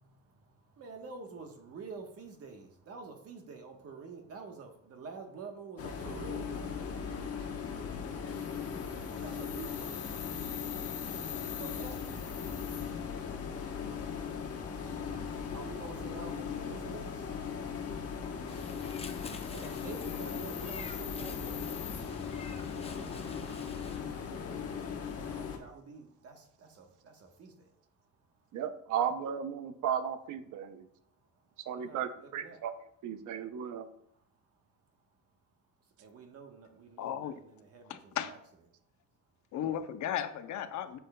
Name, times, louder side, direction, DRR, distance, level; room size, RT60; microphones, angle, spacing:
voice 1, 0.0-18.9 19.5-22.2 23.4-27.7 28.4-28.5 31.2-32.6 34.1-34.3 35.8-38.4, right 4 dB, 50° right, 4 dB, 1.2 m, -50 dB
sound 1, 5.8-25.6, left 6 dB, 50° left, 1.0 m, -38 dB
Meow, 18.5-24.0, left 4 dB, 20° left, 0.6 m, -47 dB
voice 2, 28.5-30.9 31.7-32.7 33.0-33.9, right 8 dB, 75° right, 10 dB, 0.7 m, -35 dB
voice 3, 37.0-37.4 37.9-38.3 39.5-41.0, left 10 dB, 70° left, 10 dB, 0.7 m, -35 dB
9.1 x 7.2 x 2.3 m, 0.68 s
cardioid pair, 150°, 31 cm